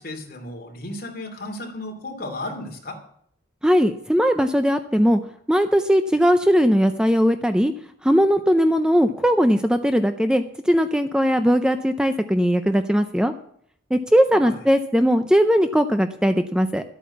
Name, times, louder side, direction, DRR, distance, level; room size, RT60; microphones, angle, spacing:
voice 1, 0.0-3.0 14.4-14.6, left 2 dB, 50° left, 2 dB, 2.7 m, -34 dB
voice 2, 3.6-5.2 5.5-7.7 8.0-13.3 13.9-16.8, equal, 5° right, 8 dB, 0.5 m, -19 dB
12.0 x 8.6 x 7.1 m, 0.66 s
head